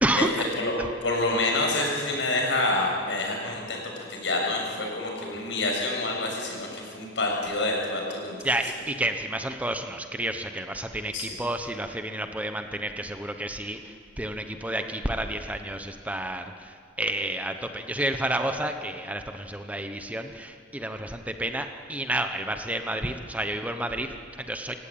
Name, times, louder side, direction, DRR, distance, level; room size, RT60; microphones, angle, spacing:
voice 1, 1.0-8.4 11.1-11.3, left 2 dB, 70° left, 0 dB, 6.9 m, -27 dB
voice 2, 8.4-24.8, right 1 dB, 10° right, 6 dB, 1.0 m, -30 dB
27.5 x 16.5 x 8.8 m, 2.1 s
head